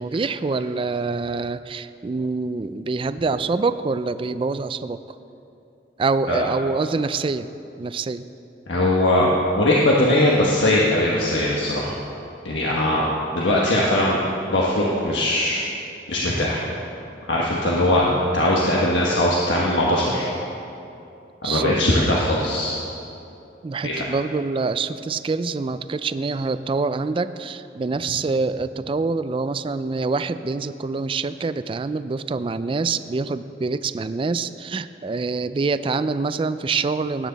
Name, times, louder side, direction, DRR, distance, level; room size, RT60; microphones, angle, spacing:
voice 1, 0.0-5.0 6.0-7.5 7.8-8.3 21.4-21.8 22.1-22.3 23.6-37.3, right 4 dB, 30° right, 13 dB, 0.3 m, -25 dB
voice 2, 8.7-9.3 9.5-11.9 12.4-14.2 14.5-15.6 16.1-16.6 17.3-20.3 21.4-22.8 23.8-24.1, left 1 dB, 90° left, -4 dB, 1.3 m, -20 dB
18.5 x 9.4 x 4.0 m, 2.8 s
head